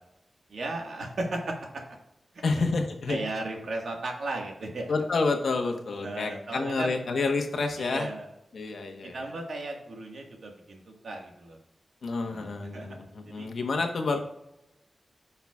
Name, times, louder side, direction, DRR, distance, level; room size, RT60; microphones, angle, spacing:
voice 1, 0.5-1.5 3.1-4.9 6.0-7.0 7.8-8.3 9.1-11.6 12.2-12.9 13.4-13.5, right 2 dB, 75° right, 1 dB, 1.6 m, -35 dB
voice 2, 2.4-3.2 4.9-8.1 8.5-9.2 12.0-14.2, left 3 dB, 80° left, 4 dB, 1.1 m, -29 dB
15.0 x 5.7 x 2.4 m, 0.87 s
wide cardioid pair, 150°, 0 cm